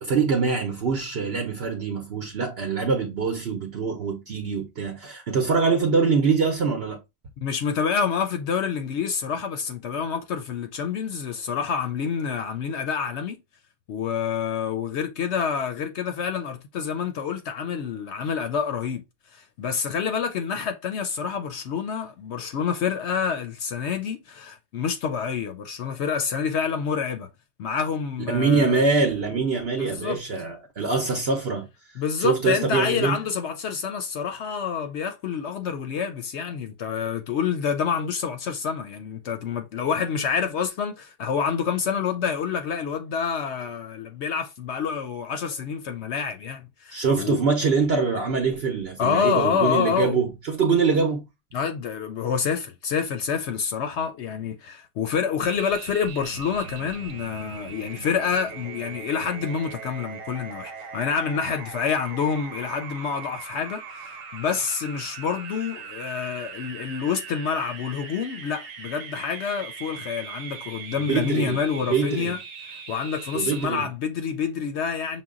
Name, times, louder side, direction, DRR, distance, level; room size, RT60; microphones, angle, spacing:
voice 1, 0.0-7.0 28.3-31.7 32.2-33.2 46.9-51.3 70.9-71.6 71.9-72.4 73.3-73.9, right 5 dB, 55° right, 0.9 m, -24 dB
voice 2, 7.4-13.4 13.9-19.0 19.3-27.3 27.6-28.9 29.8-30.2 32.0-47.4 49.0-50.2 51.5-72.4 72.7-75.2, left 6 dB, 70° left, 0.8 m, -27 dB
sound 1, 55.4-73.6, right 6 dB, 80° right, 1.2 m, -40 dB
5.8 x 2.2 x 3.7 m
omnidirectional pair, 1.3 m